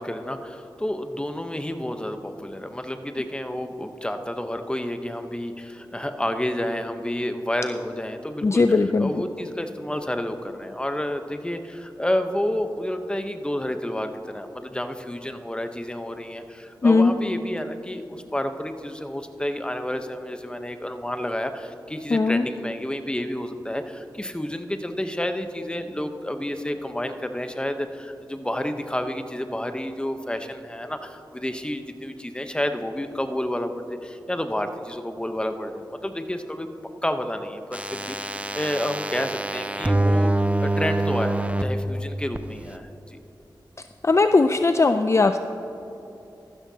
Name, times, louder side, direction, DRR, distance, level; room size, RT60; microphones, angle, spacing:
voice 1, 0.0-36.7 37.0-40.3 40.6-43.2, left 1 dB, 10° left, 7 dB, 0.9 m, -30 dB
voice 2, 8.4-9.1 16.8-17.1 22.1-22.4 44.0-45.4, left 3 dB, 35° left, 8 dB, 0.4 m, -18 dB
sound 1, 37.7-41.6 42.4-42.5, right 2 dB, 15° right, 0.6 m, -25 dB
14.0 x 12.5 x 2.8 m, 3.0 s
cardioid pair, 45°, 8 cm